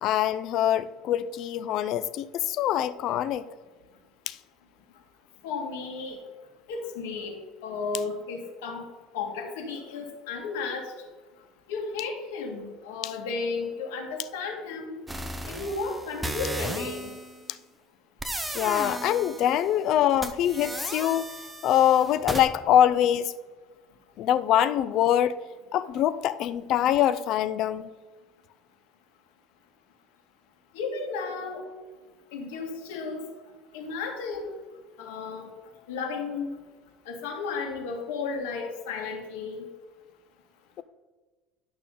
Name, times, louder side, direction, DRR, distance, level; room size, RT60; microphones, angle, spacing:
voice 1, 0.0-3.4 4.3-4.4 18.5-21.3 21.6-23.3 24.2-25.4 25.7-27.9, left 11 dB, 55° left, 0.5 m, -24 dB
voice 2, 5.4-6.2 6.7-7.4 7.6-8.8 9.1-10.9 11.7-15.0 15.5-17.1 30.7-31.6 32.3-33.2 33.7-34.5 35.0-35.5 35.9-36.5 37.1-39.7, left 4 dB, 90° left, 1.8 m, -33 dB
sound 1, 15.1-17.4 18.2-19.7 20.2-22.4, right 1 dB, 5° right, 0.7 m, -35 dB
11.0 x 6.2 x 3.9 m
supercardioid pair, 125°, 0 cm